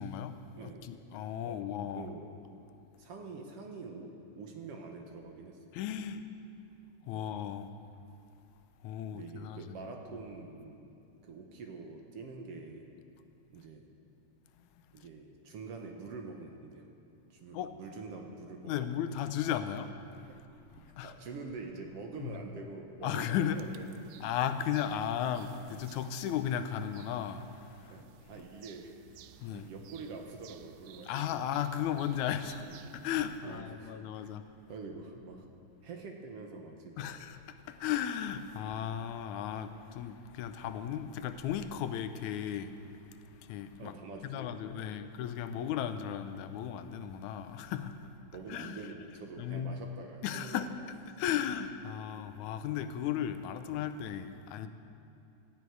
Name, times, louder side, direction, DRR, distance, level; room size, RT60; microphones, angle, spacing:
voice 1, 0.0-2.1 5.7-6.2 7.0-7.7 8.8-9.8 17.5-17.7 18.6-20.0 21.0-21.1 22.2-22.3 23.0-23.6 24.2-28.0 29.4-29.7 31.0-32.7 32.9-34.4 37.0-42.9 43.4-43.9 44.2-48.0 48.5-48.9 49.4-49.8 50.2-50.7 51.2-54.7, left 9 dB, 90° left, 10 dB, 2.1 m, -35 dB
voice 2, 0.6-1.0 1.4-1.6 2.0-2.3 3.0-5.7 7.1-7.3 9.1-10.9 11.2-12.9 13.5-13.9 14.9-16.9 17.3-19.0 20.3-20.5 21.0-24.3 27.9-29.0 29.5-31.5 32.7-32.9 33.4-34.3 34.7-35.5 35.8-37.3 43.8-45.2 48.3-50.6, right 4 dB, 60° right, 3 dB, 1.9 m, -46 dB
sound 1, 23.4-33.4, right 12 dB, 80° right, 1.6 m, -57 dB
18.0 x 12.5 x 4.7 m, 2.6 s
omnidirectional pair, 3.3 m